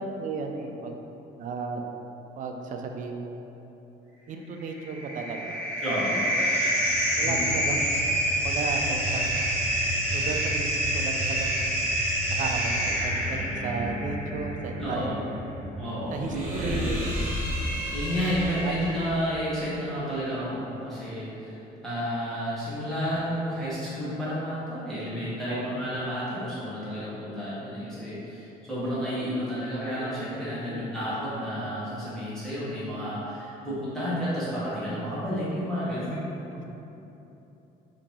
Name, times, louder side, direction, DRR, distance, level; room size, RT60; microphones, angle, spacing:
voice 1, 0.2-0.9 1.4-1.8 2.4-3.4 4.3-5.6 5.9-6.0 6.7-6.8 7.2-7.9 8.3-9.4 10.1-11.7 12.3-15.2 16.1-17.3 18.6-18.7 25.4-25.8 30.6-30.9 36.5-36.7, right 4 dB, 50° right, 3 dB, 0.4 m, -34 dB
sound 1, 4.6-19.2, equal, 15° right, 1.5 m, -28 dB
voice 2, 5.8-6.2 7.2-7.5 14.8-15.2 15.8-16.9 17.9-21.6 21.8-36.2, equal, 5° left, -12 dB, 1.1 m, -31 dB
3.6 x 2.7 x 3.0 m, 3.0 s
cardioid pair, 110°, 17 cm